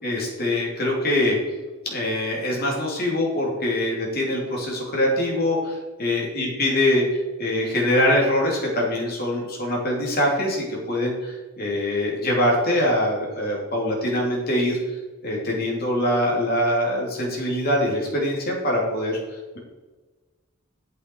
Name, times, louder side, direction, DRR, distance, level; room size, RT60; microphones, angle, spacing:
voice 1, 0.0-1.4 1.8-7.0 7.4-14.8 15.2-19.2, left 1 dB, 45° left, -2 dB, 2.9 m, -23 dB
8.8 x 8.1 x 4.6 m, 1.2 s
head